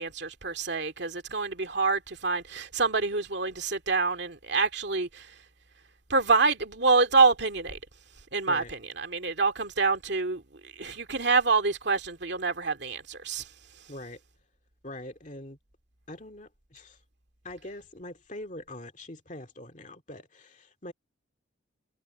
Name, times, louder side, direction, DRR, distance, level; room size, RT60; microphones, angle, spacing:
voice 1, 0.0-5.3 6.1-7.8 8.3-13.4, right 4 dB, 60° right, 2.4 m, -26 dB
voice 2, 13.9-14.2 14.8-15.6 16.1-17.0 17.4-20.9, left 1 dB, 40° left, 2.4 m, -43 dB
head